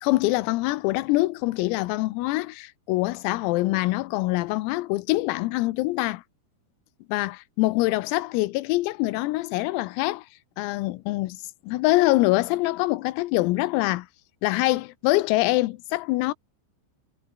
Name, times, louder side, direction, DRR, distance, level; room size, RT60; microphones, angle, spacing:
voice 1, 0.0-6.2 7.1-10.3 10.6-11.4 11.7-14.1 14.4-16.3, left 19 dB, 90° left, 3.7 m, -24 dB
omnidirectional pair, 6.0 m